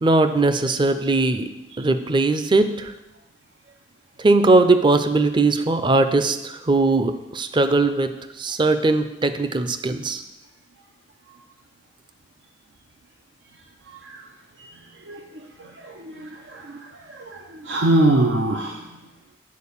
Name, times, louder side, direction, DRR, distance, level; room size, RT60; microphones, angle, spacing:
voice 1, 0.0-1.5 1.8-2.9 4.2-8.1 8.4-10.2, right 3 dB, 25° right, 10 dB, 0.5 m, -19 dB
voice 2, 13.9-14.2 15.1-15.2 15.6-18.8, right 2 dB, 90° right, 1 dB, 0.7 m, -24 dB
8.4 x 4.5 x 7.0 m, 0.95 s
head